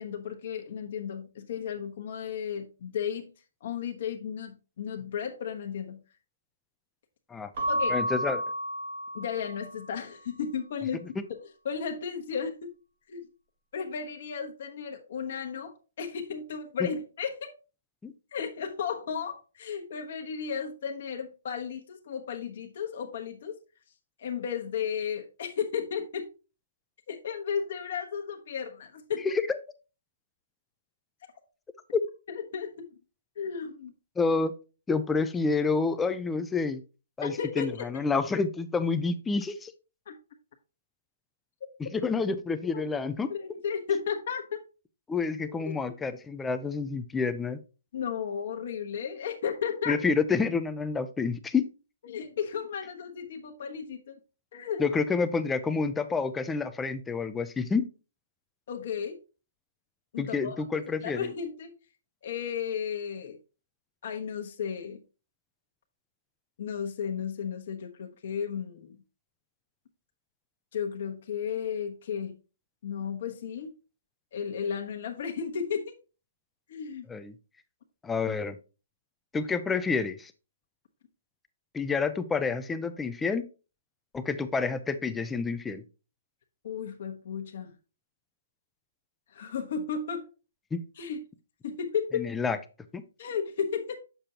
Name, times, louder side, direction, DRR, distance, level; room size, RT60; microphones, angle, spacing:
voice 1, 0.0-3.3 3.6-6.0 7.7-8.0 9.1-11.0 11.6-12.8 13.1-13.3 13.7-17.5 18.3-23.6 24.2-26.3 27.1-29.3 32.3-32.9 33.4-33.9 37.2-37.9 40.1-40.2 42.7-42.8 43.3-44.6 45.5-45.9 47.9-50.0 52.0-54.2 54.5-54.8 58.7-59.2 60.1-60.6 61.0-61.7 62.2-63.4 64.0-65.0 66.6-69.0 70.7-72.4 72.8-73.7 74.3-75.9 76.7-77.1 86.6-87.7 89.3-90.3 91.0-91.2 91.6-92.3 93.2-94.0, left 7 dB, 55° left, 3 dB, 1.0 m, -34 dB
Keyboard (musical) / Bell, 7.5-10.0, equal, 45° right, 1.6 m, -31 dB
voice 2, 7.9-8.4 18.0-18.1 29.2-29.6 31.9-32.0 34.2-34.5 34.9-36.8 37.2-39.7 41.9-43.3 45.1-47.6 49.9-51.7 54.8-57.9 60.2-61.3 77.1-77.3 78.0-78.6 79.3-80.3 81.7-83.4 84.1-85.8 90.7-90.8 92.1-92.6 92.9-93.0, left 4 dB, 10° left, 11 dB, 0.4 m, -28 dB
7.4 x 6.8 x 2.8 m, 0.32 s
hypercardioid pair, 150°, 0 cm